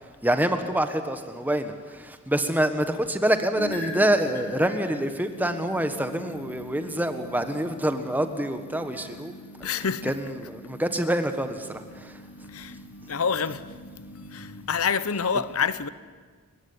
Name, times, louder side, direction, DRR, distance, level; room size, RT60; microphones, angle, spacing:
voice 1, 0.2-9.3 10.0-12.2, right 1 dB, 10° right, 1.4 m, -26 dB
sound 1, 3.5-14.6, left 1 dB, 45° left, 4.4 m, -42 dB
voice 2, 9.6-10.5 12.5-12.8 13.1-13.6 14.3-15.9, left 6 dB, 70° left, 0.8 m, -27 dB
29.0 x 15.0 x 9.8 m
head